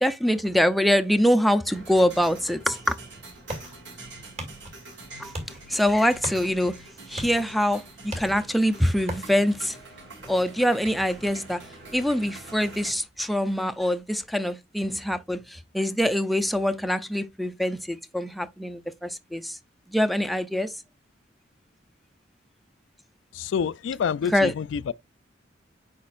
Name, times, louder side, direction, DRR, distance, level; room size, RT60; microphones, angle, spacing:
voice 1, 0.0-3.0 5.2-5.3 5.7-6.8 7.1-9.8 10.3-11.6 11.9-19.6 19.9-20.7 24.3-24.5, equal, ahead, 0.5 m, -24 dB
sound 1, 1.6-12.9, right 2 dB, 70° right, 3.5 m, -45 dB
sound 2, 2.9-14.2, right 1 dB, 35° right, 2.3 m, -42 dB
voice 2, 23.3-24.9, left 7 dB, 80° left, 0.3 m, -27 dB
8.5 x 5.1 x 2.4 m
head